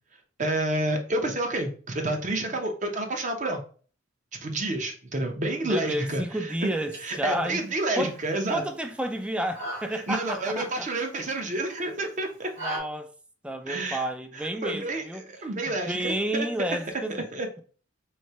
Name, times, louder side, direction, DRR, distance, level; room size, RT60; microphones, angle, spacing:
voice 1, 0.4-3.6 4.4-6.7 7.0-8.6 9.9-12.5 13.7-14.0 14.4-16.5 17.3-17.5, right 2 dB, 40° right, 0.8 m, -29 dB
voice 2, 5.6-7.6 8.0-8.2 8.5-10.9 12.6-13.1 13.4-15.3 15.7-17.3, right 1 dB, 5° right, 0.3 m, -31 dB
sound 1, 6.6-12.8, right 1 dB, 80° right, 1.9 m, -42 dB
3.2 x 2.8 x 4.3 m
head